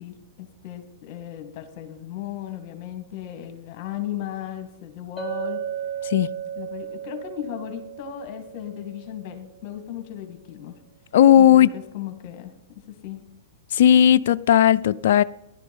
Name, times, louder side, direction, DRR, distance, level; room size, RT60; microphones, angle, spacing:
voice 1, 0.0-5.6 6.6-10.7 11.4-12.5 12.9-13.2, left 11 dB, 45° left, 2.1 m, -36 dB
Chink clink, 5.2-9.6, right 9 dB, 5° right, 4.6 m, -35 dB
voice 2, 11.1-11.7 13.7-15.2, left 10 dB, 65° left, 0.4 m, -15 dB
15.0 x 11.5 x 5.5 m
hypercardioid pair, 125°, 0 cm